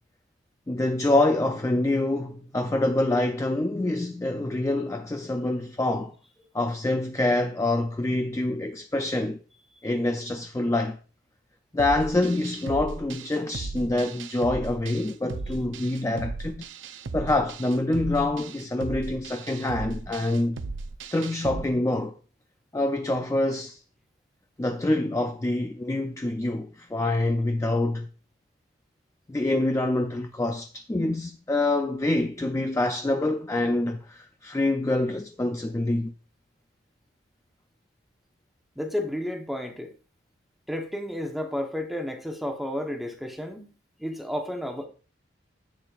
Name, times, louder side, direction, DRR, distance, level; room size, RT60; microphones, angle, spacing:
voice 1, 0.7-6.1 6.5-9.4 9.8-11.0 11.7-16.6 17.1-20.6 21.1-22.1 22.7-23.8 24.6-28.1 29.3-36.1, left 2 dB, 15° left, 0.3 m, -26 dB
sound 1, 11.8-21.7, right 3 dB, 60° right, 0.6 m, -36 dB
voice 2, 38.8-39.9 40.7-43.7 44.0-44.9, left 1 dB, ahead, 0.9 m, -32 dB
10.5 x 7.4 x 2.4 m
head